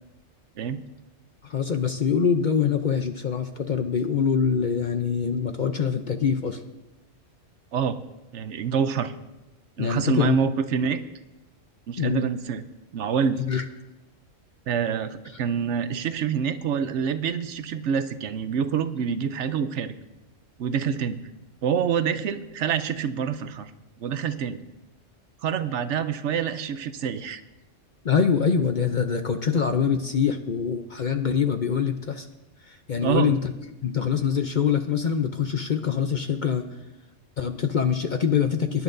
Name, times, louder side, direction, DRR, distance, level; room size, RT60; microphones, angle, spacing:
voice 1, 1.4-6.6 9.8-10.5 12.0-12.2 13.5-13.6 28.0-32.3 32.7-33.5 33.8-36.7 37.4-38.8, left 7 dB, 50° left, 6 dB, 0.6 m, -24 dB
voice 2, 8.3-9.1 9.8-11.0 11.9-12.6 12.9-13.4 14.7-19.9 20.6-21.2 21.6-23.7 24.0-24.6 25.4-27.4 33.0-33.3, right 7 dB, 70° right, 11 dB, 0.9 m, -26 dB
22.5 x 10.5 x 2.6 m, 0.99 s
omnidirectional pair, 1.3 m